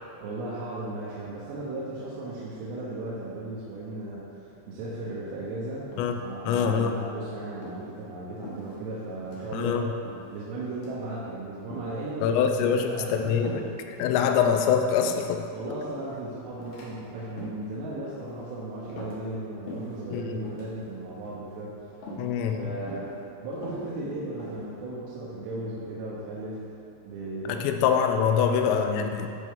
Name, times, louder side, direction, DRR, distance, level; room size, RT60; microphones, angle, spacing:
voice 1, 0.2-5.9 6.2-9.9 10.3-14.3 15.5-21.7 22.6-23.1 23.4-26.7 27.1-27.7 28.3-28.8 29.1-29.3, right 2 dB, 80° right, -8 dB, 3.1 m, -36 dB
sound 1, 5.9-6.4 6.8-7.0 7.5-7.8 8.4-9.0 9.2-9.4 10.0-10.4 10.7-11.1 11.7-12.0 12.6-13.0 13.4-13.7 14.1-15.4 15.8-16.1 16.6-16.9 17.2-17.7 18.2-18.5 18.9-19.4 19.7-20.0 20.3-20.7 21.2-21.6 22.0-22.3 22.9-23.2 23.5-24.7, equal, 65° left, 1.9 m, -42 dB
voice 2, 6.5-6.9 9.5-9.8 12.2-13.6 14.0-15.4 20.1-20.4 22.2-22.7 27.6-29.3, left 7 dB, 85° left, 5 dB, 2.7 m, -24 dB
10.5 x 4.5 x 3.7 m, 2.8 s
omnidirectional pair, 5.2 m